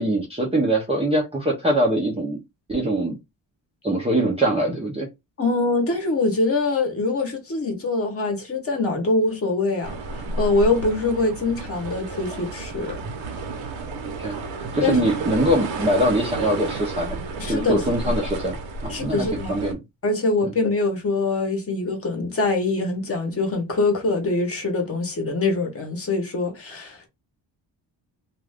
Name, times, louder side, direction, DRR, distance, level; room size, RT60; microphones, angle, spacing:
voice 1, 0.0-2.4 2.7-3.2 3.8-5.1 14.2-17.2 17.5-18.6 18.8-19.8, right 1 dB, 15° right, 0.5 m, -23 dB
voice 2, 5.4-13.0 14.8-15.0 17.4-17.8 18.9-19.6 20.0-27.1, left 3 dB, 30° left, 0.9 m, -24 dB
sound 1, 9.8-19.7, right 3 dB, 80° right, 0.9 m, -31 dB
2.4 x 2.4 x 3.3 m
wide cardioid pair, 160°, 45 cm